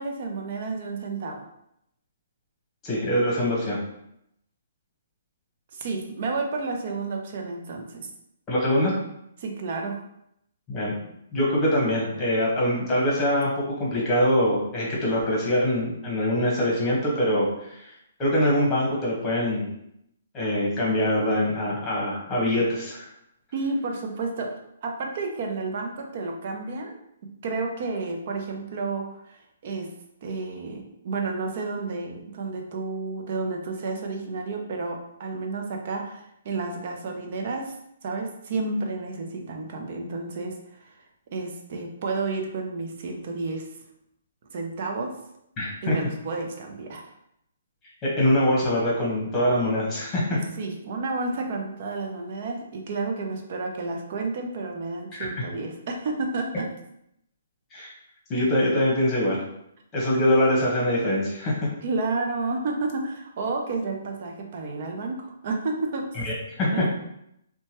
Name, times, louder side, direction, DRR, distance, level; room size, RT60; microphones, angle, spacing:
voice 1, 0.0-1.5 5.7-8.1 9.4-10.0 23.5-26.9 27.4-29.9 30.2-37.7 38.0-40.5 40.8-41.0 41.3-43.6 44.5-45.1 45.8-47.1 50.6-56.7 61.8-66.1 66.7-66.8, right 3 dB, 50° right, 2 dB, 0.5 m, -31 dB
voice 2, 2.8-3.8 8.5-8.9 10.7-10.9 11.3-13.5 13.8-17.9 18.2-19.7 20.3-23.1 45.6-46.0 48.0-50.4 55.1-55.3 57.7-57.9 58.3-59.5 59.9-61.7 66.2-66.7, left 1 dB, 20° left, -4 dB, 1.0 m, -23 dB
2.9 x 2.2 x 2.9 m, 0.76 s
hypercardioid pair, 150°, 0 cm